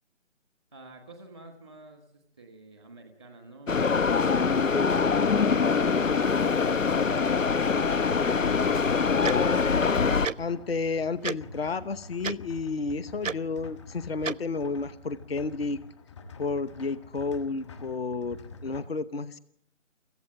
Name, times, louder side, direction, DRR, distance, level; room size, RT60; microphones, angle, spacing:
voice 1, 0.7-4.1, right 2 dB, 5° left, 6 dB, 0.8 m, -50 dB
sound 1, 3.7-10.3, left 5 dB, 85° left, 0.9 m, -24 dB
sound 2, 6.2-18.8, left 4 dB, 25° left, 1.5 m, -47 dB
voice 2, 9.2-9.7 10.4-15.8 16.4-19.4, left 4 dB, 50° left, 15 dB, 0.9 m, -31 dB
Tick-tock, 9.2-9.3 10.2-10.3 11.2-11.4 12.2-12.4 13.2-13.3 14.2-14.3, right 6 dB, 85° right, 0.7 m, -30 dB
25.0 x 15.0 x 7.6 m, 0.73 s
figure-of-eight pair, 160°, 38 cm